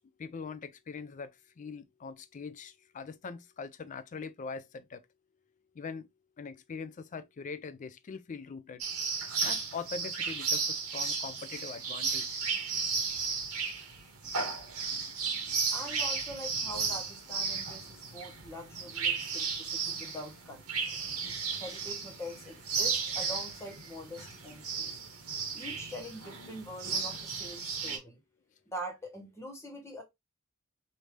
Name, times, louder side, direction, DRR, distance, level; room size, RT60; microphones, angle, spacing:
voice 1, 0.2-1.3 1.6-5.0 5.8-6.1 6.4-8.8 9.4-12.4, left 5 dB, 35° left, 0.4 m, -42 dB
sound 1, 8.8-28.0, right 5 dB, 85° right, 1.0 m, -34 dB
voice 2, 15.7-20.8 21.6-24.9 25.5-28.2 28.7-30.0, equal, 10° left, 1.0 m, -44 dB
3.2 x 2.7 x 3.1 m
head